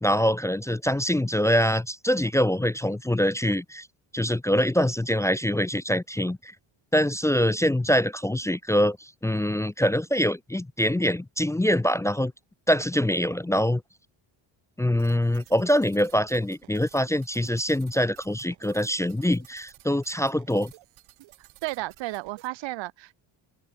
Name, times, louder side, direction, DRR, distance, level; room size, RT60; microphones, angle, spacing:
voice 1, 0.0-3.9 4.1-6.5 6.9-12.3 12.7-13.8 14.8-20.7, equal, 5° left, 0.6 m, -24 dB
sound 1, 15.0-22.5, right 18 dB, 85° right, 5.6 m, -54 dB
voice 2, 21.4-23.2, right 18 dB, 70° right, 0.8 m, -33 dB
open air
cardioid pair, 105°, 46 cm